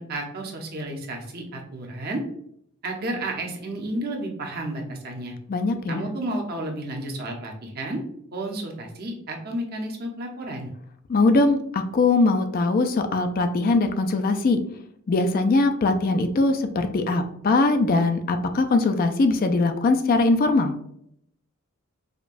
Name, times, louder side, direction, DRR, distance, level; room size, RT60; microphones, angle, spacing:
voice 1, 0.0-2.2 2.8-5.3 5.9-8.0 8.3-10.7, right 1 dB, 45° right, 1 dB, 0.8 m, -32 dB
voice 2, 5.5-6.0 11.1-14.6 15.1-20.7, left 3 dB, 40° left, 7 dB, 0.3 m, -21 dB
5.0 x 2.2 x 2.5 m, 0.71 s
head